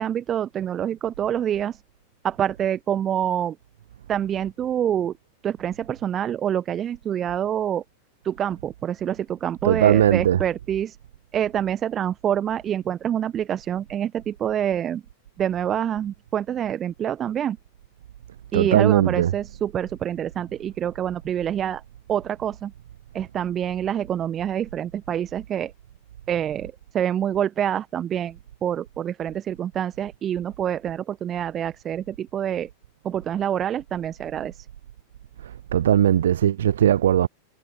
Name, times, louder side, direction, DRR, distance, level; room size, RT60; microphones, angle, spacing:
voice 1, 0.0-1.8 2.2-3.6 4.1-5.1 5.4-7.8 8.2-11.0 11.3-15.0 15.4-17.6 18.5-21.8 22.1-22.7 23.1-25.7 26.3-28.4 28.6-32.7 33.0-34.6, right 10 dB, 25° right, 1.3 m, -26 dB
voice 2, 9.6-10.4 18.5-19.3 35.7-37.3, right 10 dB, 60° right, 0.5 m, -18 dB
figure-of-eight pair, 90°, 0 cm